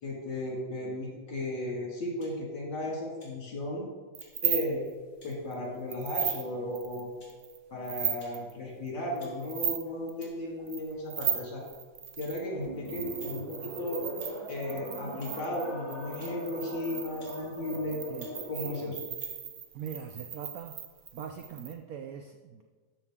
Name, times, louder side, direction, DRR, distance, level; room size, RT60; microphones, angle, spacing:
voice 1, 0.0-3.9 4.4-4.9 5.2-7.1 7.7-11.6 12.2-14.0 14.5-18.1 18.4-19.0, left 1 dB, 70° left, -2 dB, 2.8 m, -35 dB
sound 1, 2.2-2.4 3.2-3.4 4.2-4.3 5.2-5.4 6.2-6.5 7.2-7.3 8.2-8.4 9.2-9.4 10.2-10.3 11.2-11.4 12.2-12.4 13.2-13.3 14.2-14.3 15.2-15.3 16.2-16.4 17.2-17.4 18.2-18.3 19.2-19.3, left 1 dB, 30° left, 3.1 m, -57 dB
sound 2, 4.2-4.9 5.3-5.5 5.9-6.4 6.8-7.6 7.8-8.5 9.2-9.8 10.1-10.3 10.7-12.4 12.9-21.7, right 8 dB, 60° right, 1.1 m, -36 dB
sound 3, 12.5-19.0, equal, 35° right, 3.4 m, -41 dB
voice 2, 19.7-20.8 21.1-22.6, right 8 dB, 75° right, 5 dB, 0.8 m, -41 dB
13.0 x 6.2 x 3.6 m, 1.4 s
omnidirectional pair, 2.1 m